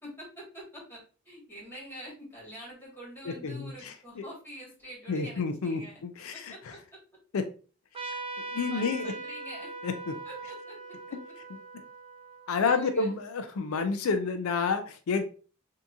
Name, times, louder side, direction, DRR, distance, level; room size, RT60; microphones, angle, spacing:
voice 1, 0.0-6.0 6.3-6.8 8.3-8.4 8.7-9.7 10.2-10.8 12.6-13.1, equal, 10° left, -5 dB, 1.8 m, -46 dB
voice 2, 3.3-4.2 5.1-6.5 7.3-7.4 8.5-9.1 9.8-10.1 12.5-15.3, left 4 dB, 85° left, 7 dB, 0.4 m, -29 dB
Trumpet, 7.9-13.0, right 3 dB, 25° right, 0.5 m, -41 dB
3.6 x 2.8 x 2.6 m, 0.37 s
head